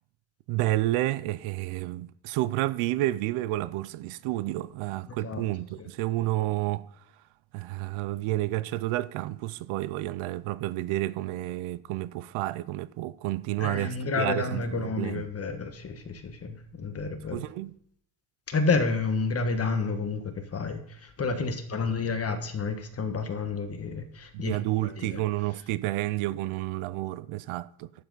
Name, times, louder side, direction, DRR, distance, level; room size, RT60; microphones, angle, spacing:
voice 1, 0.5-6.9 7.5-15.2 17.3-17.7 24.3-27.9, right 16 dB, 90° right, 0.6 m, -30 dB
voice 2, 5.1-5.4 5.8-5.9 13.6-17.4 18.5-24.6 24.8-25.2, left 4 dB, 30° left, 1.3 m, -30 dB
11.5 x 7.6 x 4.0 m
cardioid pair, 135°, 48 cm